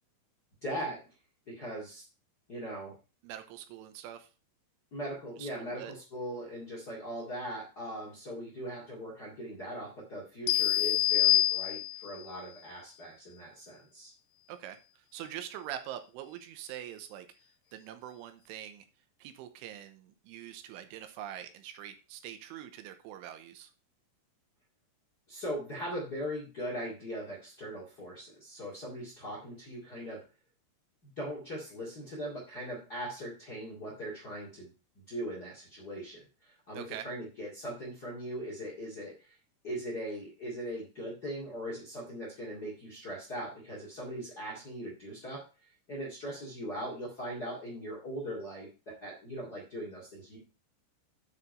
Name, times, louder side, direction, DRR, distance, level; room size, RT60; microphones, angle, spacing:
voice 1, 0.6-1.0 1.5-2.0 2.5-2.9 4.9-14.1 25.3-30.2 31.0-34.7 35.1-39.4 39.6-45.4 45.9-50.4, equal, 55° left, -4 dB, 1.0 m, -40 dB
voice 2, 3.2-4.3 5.4-5.9 14.5-14.8 15.1-17.3 17.7-18.9 19.2-23.7 36.7-37.1, right 11 dB, 80° right, 9 dB, 3.2 m, -44 dB
sound 1, 10.5-12.2, left 14 dB, 85° left, 3.2 m, -26 dB
9.8 x 4.9 x 5.1 m, 0.33 s
omnidirectional pair, 5.9 m